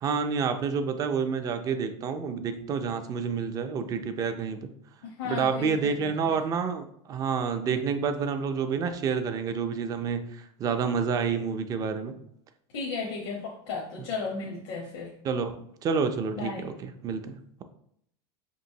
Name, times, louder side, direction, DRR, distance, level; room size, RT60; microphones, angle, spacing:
voice 1, 0.0-4.7 5.2-12.2 15.2-17.6, right 5 dB, 25° right, 8 dB, 0.3 m, -29 dB
voice 2, 5.0-6.4 12.7-15.1 16.3-16.7, left 4 dB, 75° left, -1 dB, 0.8 m, -35 dB
5.0 x 3.0 x 2.7 m, 0.71 s
supercardioid pair, 150°, 14 cm